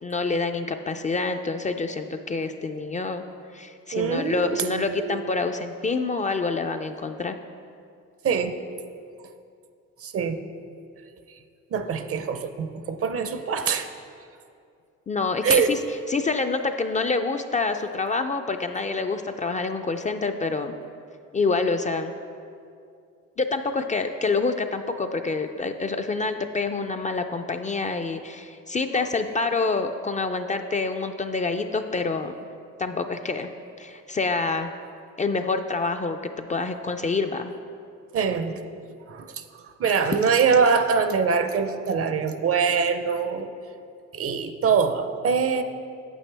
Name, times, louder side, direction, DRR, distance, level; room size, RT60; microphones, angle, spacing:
voice 1, 0.0-3.2 3.5-7.4 15.1-15.8 16.1-20.7 21.3-22.1 23.4-32.4 32.8-33.5 33.8-34.7 35.2-37.5, left 3 dB, 25° left, 6 dB, 0.3 m, -27 dB
voice 2, 3.9-5.2 8.2-8.5 10.0-10.4 11.7-13.9 15.4-15.7 38.1-38.5 39.1-39.4 39.8-43.5 44.1-45.6, right 6 dB, 50° right, 9 dB, 0.6 m, -23 dB
8.9 x 8.0 x 3.3 m, 2.4 s
cardioid pair, 90°, 30 cm